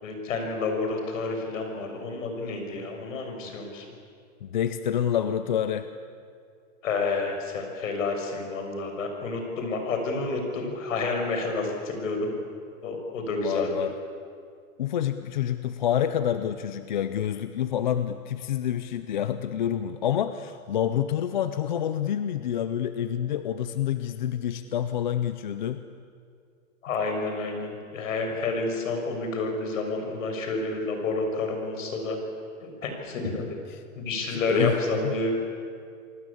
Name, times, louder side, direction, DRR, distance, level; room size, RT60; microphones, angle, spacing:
voice 1, 0.0-3.9 6.8-12.3 12.8-13.7 26.8-32.2 32.6-33.6 34.0-35.3, left 3 dB, 65° left, 4 dB, 6.4 m, -29 dB
voice 2, 4.4-5.9 13.4-13.9 14.8-25.8 33.7-33.8 34.3-35.3, left 10 dB, 35° left, 11 dB, 0.6 m, -28 dB
27.5 x 19.5 x 8.5 m, 2.3 s
supercardioid pair, 180°, 42 cm